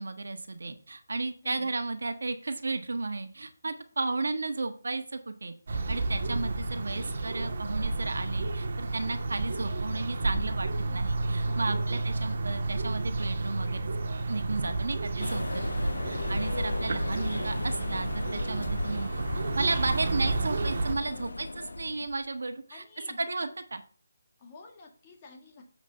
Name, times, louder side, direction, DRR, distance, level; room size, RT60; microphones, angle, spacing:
voice 1, 0.0-13.9 14.3-19.2 19.5-21.5 21.8-22.8 23.2-23.8, right 3 dB, 70° right, 8 dB, 1.3 m, -34 dB
sound 1, 5.7-20.9, right 2 dB, 40° right, 1.5 m, -31 dB
voice 2, 10.7-11.9 15.9-16.4 21.1-22.0 22.7-23.2 24.4-25.6, left 3 dB, 15° left, 0 dB, 1.7 m, -51 dB
sound 2, 15.2-22.2, left 2 dB, 80° left, 1.0 m, -35 dB
7.4 x 6.0 x 5.6 m, 0.40 s
hypercardioid pair, 175°, 0 cm